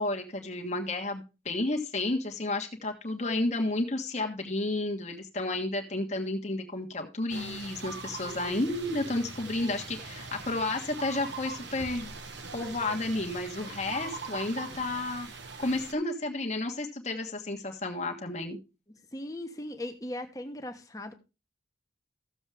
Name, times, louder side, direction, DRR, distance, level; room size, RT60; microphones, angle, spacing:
voice 1, 0.0-12.1 12.5-15.3 15.6-18.6, left 2 dB, 40° left, 2 dB, 1.4 m, -31 dB
sound 1, 7.3-15.9, right 4 dB, 70° right, 1.4 m, -41 dB
voice 2, 19.1-21.1, left 1 dB, 20° left, 6 dB, 1.2 m, -38 dB
14.5 x 7.2 x 3.4 m, 0.30 s
head